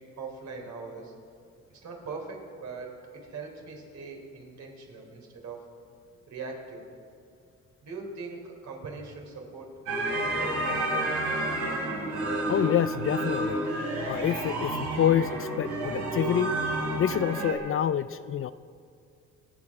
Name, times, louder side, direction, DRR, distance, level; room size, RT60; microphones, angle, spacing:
voice 1, 0.2-1.1 1.7-5.6 6.3-6.8 7.8-11.5, right 4 dB, 65° right, 1 dB, 3.9 m, -41 dB
sound 1, 9.9-17.5, right 1 dB, 85° right, 4.1 m, -30 dB
voice 2, 12.5-13.6 14.1-16.5 17.0-18.5, left 10 dB, 45° left, 14 dB, 0.4 m, -27 dB
26.5 x 8.9 x 4.8 m, 2.4 s
cardioid pair, 90°, 30 cm